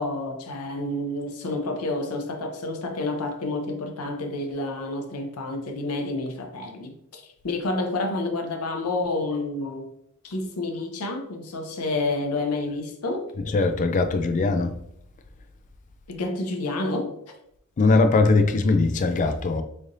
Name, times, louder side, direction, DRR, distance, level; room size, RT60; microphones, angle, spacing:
voice 1, 0.0-9.9 10.2-13.3 16.1-17.1, left 2 dB, 90° left, 0.7 m, -29 dB
voice 2, 13.5-14.8 17.8-19.6, left 3 dB, 35° left, 0.3 m, -20 dB
3.8 x 3.2 x 2.6 m
head